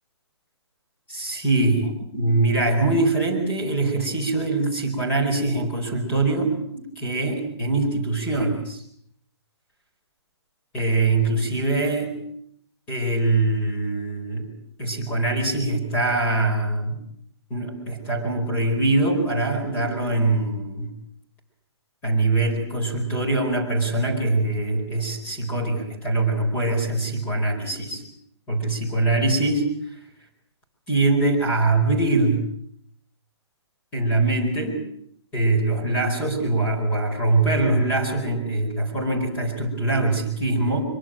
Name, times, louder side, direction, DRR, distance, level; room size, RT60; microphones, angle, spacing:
voice 1, 1.1-8.8 10.7-12.1 12.9-14.5 14.8-17.0 17.5-20.9 22.0-28.0 28.5-29.7 29.9-30.0 30.9-32.4 33.9-34.8 35.3-40.8, right 2 dB, 10° left, 1 dB, 4.5 m, -23 dB
24.0 x 23.0 x 7.6 m, 0.67 s
hypercardioid pair, 175°, 15 cm